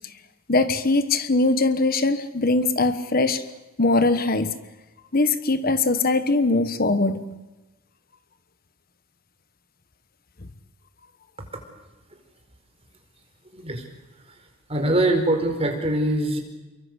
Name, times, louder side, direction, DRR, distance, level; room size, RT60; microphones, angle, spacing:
voice 1, 0.5-3.5 3.8-4.5 5.1-7.2, left 3 dB, 45° left, 11 dB, 1.3 m, -21 dB
voice 2, 13.5-13.9 14.3-14.4 14.7-16.4, right 1 dB, 30° right, 4 dB, 4.9 m, -23 dB
29.5 x 24.0 x 8.1 m, 1.1 s
head